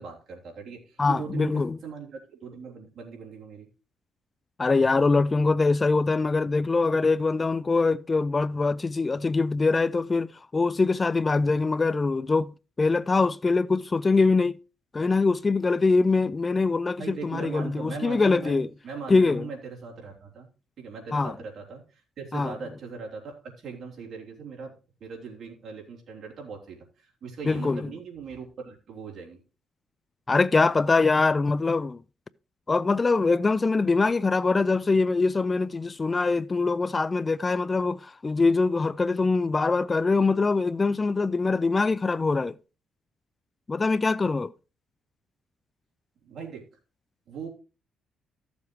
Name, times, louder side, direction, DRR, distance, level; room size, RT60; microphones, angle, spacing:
voice 1, 0.0-3.7 17.0-20.5 20.8-24.7 25.0-29.4 46.2-46.7 47.3-47.5, right 5 dB, 60° right, 3.4 m, -40 dB
voice 2, 1.0-1.8 4.6-12.5 12.8-14.6 14.9-18.7 19.1-19.5 21.1-21.3 22.3-22.5 27.5-27.9 30.3-32.0 32.7-42.5 43.7-44.5, left 3 dB, 25° left, 0.4 m, -23 dB
14.5 x 7.1 x 3.1 m
cardioid pair, 90°, 0 cm